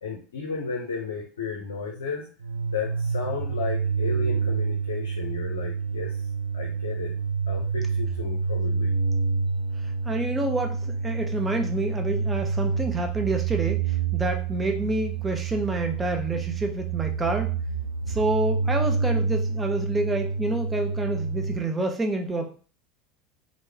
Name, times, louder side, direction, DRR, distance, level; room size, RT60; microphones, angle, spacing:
voice 1, 0.0-2.3 2.7-6.2 6.5-7.1 7.5-9.0, left 5 dB, 75° left, -1 dB, 0.5 m, -33 dB
sound 1, 2.4-21.6, right 5 dB, 85° right, 0.3 m, -28 dB
voice 2, 9.8-17.5 18.1-22.6, right 2 dB, 15° right, 3 dB, 0.6 m, -28 dB
3.1 x 2.0 x 3.3 m, 0.39 s
figure-of-eight pair, 80°, 0 cm